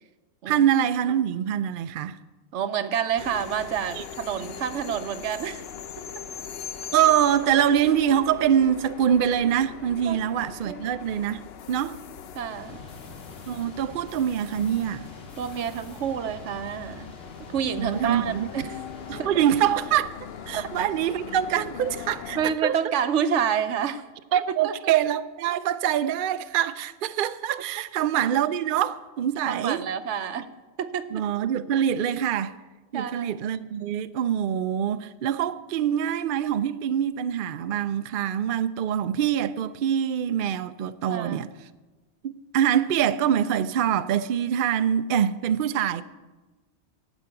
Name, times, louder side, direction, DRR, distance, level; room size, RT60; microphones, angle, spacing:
voice 1, 0.5-2.2 3.9-4.0 6.9-11.4 11.7-12.0 13.5-15.1 17.8-18.5 19.1-20.1 20.5-22.7 24.3-29.8 31.1-32.5 32.9-41.5 42.2-46.0, right 9 dB, 60° right, 0.6 m, -24 dB
voice 2, 2.5-5.6 10.0-10.2 10.7-10.9 12.3-12.8 15.4-17.1 17.5-18.8 19.2-19.4 20.5-20.7 22.4-24.0 24.5-24.9 29.5-30.5 30.8-31.2 32.9-33.4 41.1-41.4, right 8 dB, 85° right, 1.1 m, -28 dB
sound 1, 3.2-22.5, left 8 dB, 65° left, 0.8 m, -41 dB
sound 2, 12.5-19.3, left 2 dB, 45° left, 3.3 m, -46 dB
15.0 x 5.3 x 8.9 m
omnidirectional pair, 1.2 m